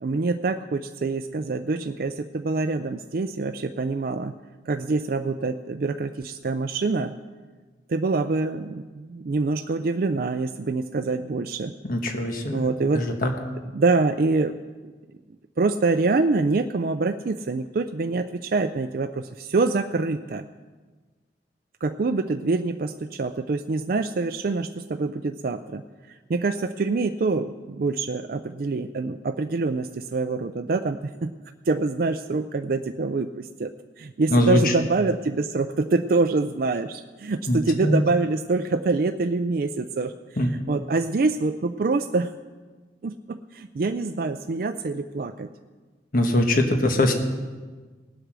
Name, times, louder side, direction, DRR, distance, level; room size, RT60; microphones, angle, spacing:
voice 1, 0.0-4.3 4.7-7.1 7.9-11.7 12.5-13.2 13.7-14.9 15.6-20.5 21.8-31.3 31.7-42.3 43.0-45.5, right 3 dB, 55° right, 7 dB, 0.4 m, -25 dB
voice 2, 11.8-12.6 12.9-13.3 34.3-34.7 37.5-38.0 40.4-40.5 46.1-47.1, left 1 dB, 50° left, 4 dB, 1.3 m, -22 dB
18.0 x 8.1 x 6.1 m, 1.4 s
head